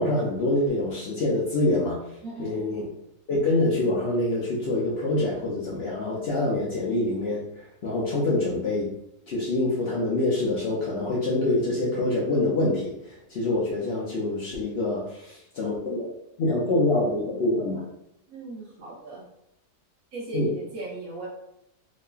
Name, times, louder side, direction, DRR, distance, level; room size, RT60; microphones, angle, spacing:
voice 1, 0.0-2.0 2.4-2.8 3.3-8.9 9.3-16.1 16.4-17.9 20.3-20.5, left 2 dB, 70° left, -5 dB, 0.5 m, -25 dB
voice 2, 2.2-2.8 18.3-19.3 20.1-21.3, right 2 dB, 65° right, -4 dB, 1.2 m, -38 dB
2.8 x 2.4 x 2.2 m, 0.80 s
omnidirectional pair, 1.7 m